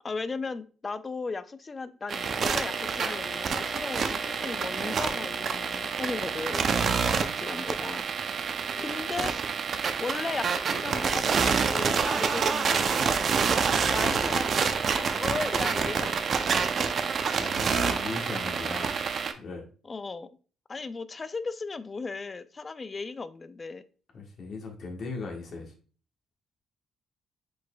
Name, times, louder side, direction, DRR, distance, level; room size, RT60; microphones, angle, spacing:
voice 1, 0.0-6.7 7.0-8.1 8.8-9.3 10.0-13.4 13.9-14.5 14.9-16.9 19.8-20.3 20.7-23.8, left 4 dB, 30° left, 14 dB, 0.4 m, -36 dB
sound 1, 2.1-19.3, right 5 dB, 55° right, 0.5 m, -27 dB
voice 2, 17.4-19.7 24.1-25.7, left 3 dB, 55° left, 1 dB, 1.2 m, -38 dB
4.9 x 4.2 x 2.2 m, 0.39 s
cardioid pair, 90°, 0 cm